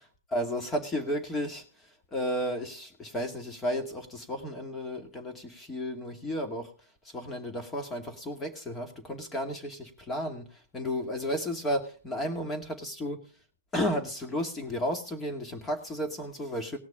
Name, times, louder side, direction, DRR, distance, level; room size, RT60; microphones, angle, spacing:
voice 1, 0.3-1.6 2.1-6.7 7.0-13.2 13.7-16.8, equal, 15° left, 6 dB, 2.4 m, -33 dB
18.5 x 6.4 x 5.0 m, 0.37 s
hypercardioid pair, 125°, 0 cm